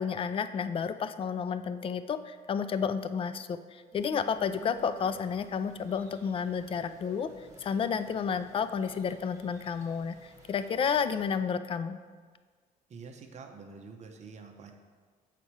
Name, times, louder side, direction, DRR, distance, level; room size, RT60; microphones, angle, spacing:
voice 1, 0.0-7.3 7.6-12.0, left 6 dB, 35° left, 12 dB, 0.4 m, -31 dB
sound 1, 3.9-11.3, right 1 dB, 15° right, 1.6 m, -54 dB
voice 2, 12.9-14.7, right 5 dB, 40° right, 3 dB, 0.9 m, -47 dB
7.1 x 4.2 x 4.7 m, 1.6 s
cardioid pair, 110°, 17 cm